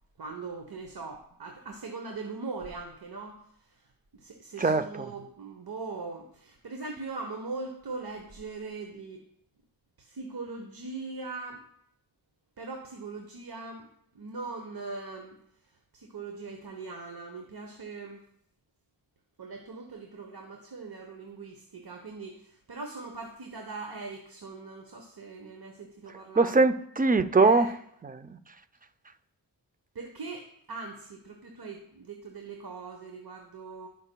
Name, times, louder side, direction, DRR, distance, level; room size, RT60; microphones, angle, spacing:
voice 1, 0.2-3.8 4.1-9.2 10.0-11.6 12.6-15.4 15.9-18.2 19.4-26.6 27.4-27.7 29.9-33.9, right 3 dB, 65° right, 1.1 m, -41 dB
voice 2, 4.6-5.1 26.4-27.8 28.0-28.4, right 3 dB, 20° right, 0.5 m, -23 dB
16.0 x 5.5 x 2.3 m
cardioid pair, 45°, 41 cm